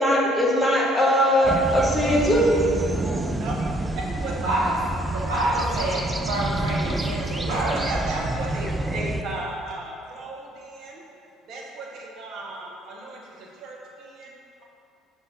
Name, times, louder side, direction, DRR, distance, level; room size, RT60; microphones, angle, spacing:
voice 1, 0.0-2.6, equal, 10° left, -4 dB, 1.2 m, -20 dB
sound 1, 1.4-9.2, right 1 dB, 15° right, 0.4 m, -28 dB
voice 2, 4.0-4.3 7.4-11.0 11.5-14.3, right 2 dB, 55° right, -2 dB, 1.1 m, -35 dB
voice 3, 5.0-7.8, right 2 dB, 75° right, -8 dB, 0.9 m, -27 dB
5.3 x 3.8 x 5.1 m, 2.6 s
hypercardioid pair, 60°, 0 cm